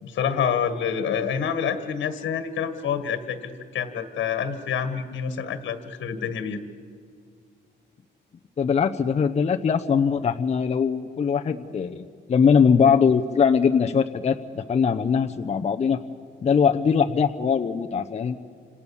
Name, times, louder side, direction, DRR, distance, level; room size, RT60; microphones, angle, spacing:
voice 1, 0.0-6.6, left 7 dB, 80° left, 9 dB, 1.8 m, -27 dB
voice 2, 8.6-16.0 16.4-18.4, left 6 dB, 35° left, 5 dB, 0.8 m, -21 dB
30.0 x 27.0 x 7.2 m, 2.1 s
wide cardioid pair, 155°, 19 cm